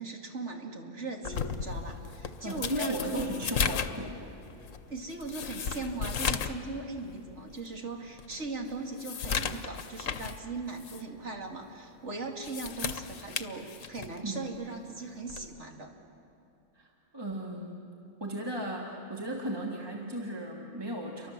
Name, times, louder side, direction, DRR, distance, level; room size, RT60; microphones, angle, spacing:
voice 1, 0.0-3.3 4.9-15.9, right 3 dB, 60° right, 2 dB, 2.7 m, -39 dB
sound 1, 1.2-6.6 7.0-7.1 7.7-7.8 8.2-10.4 10.8-11.0 12.2-14.2 15.3-15.5, left 7 dB, 80° left, 1.3 m, -35 dB
voice 2, 2.4-4.2 14.2-14.4 16.7-16.9 17.1-17.8 18.2-21.3, right 1 dB, 20° right, -1 dB, 2.2 m, -35 dB
30.0 x 24.0 x 7.5 m, 2.7 s
omnidirectional pair, 1.3 m